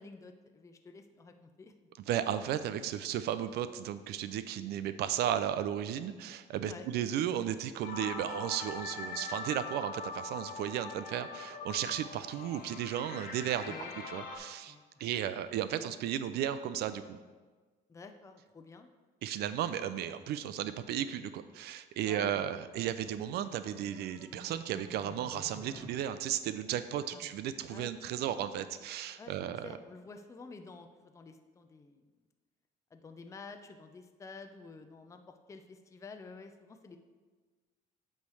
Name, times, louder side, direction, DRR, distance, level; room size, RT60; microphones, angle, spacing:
voice 1, 0.0-1.7 6.6-6.9 13.6-14.0 14.7-15.1 17.9-18.9 22.1-22.5 27.1-27.3 27.7-27.9 29.2-29.3 29.6-32.1 32.9-37.0, left 4 dB, 20° left, 6 dB, 0.5 m, -50 dB
voice 2, 2.1-13.7 14.1-14.7 15.0-17.2 19.2-29.7, right 10 dB, 75° right, 12 dB, 0.4 m, -34 dB
sound 1, 7.8-14.4, left 4 dB, 65° left, 1.4 m, -42 dB
sound 2, 22.6-25.9, equal, 20° right, 2.4 m, -52 dB
8.5 x 3.2 x 6.2 m, 1.4 s
cardioid pair, 110°, 17 cm